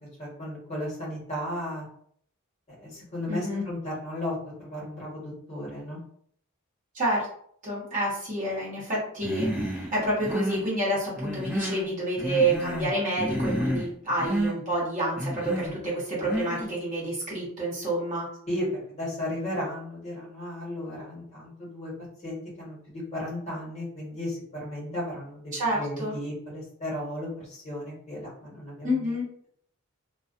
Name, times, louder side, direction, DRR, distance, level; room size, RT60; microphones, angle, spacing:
voice 1, 0.2-1.9 2.8-6.0 13.5-13.8 18.5-21.9 22.2-29.1, left 1 dB, 30° left, -6 dB, 1.2 m, -35 dB
voice 2, 3.3-3.6 6.9-7.3 7.6-18.3 25.5-26.1 28.8-29.3, right 1 dB, 35° right, -7 dB, 0.9 m, -28 dB
Human voice, 9.2-9.9 10.2-10.7 11.2-11.9 12.2-12.9 13.2-13.9 14.2-14.6 15.2-15.7 16.2-16.7, equal, 10° right, 0.6 m, -30 dB
2.4 x 2.3 x 2.4 m, 0.63 s
head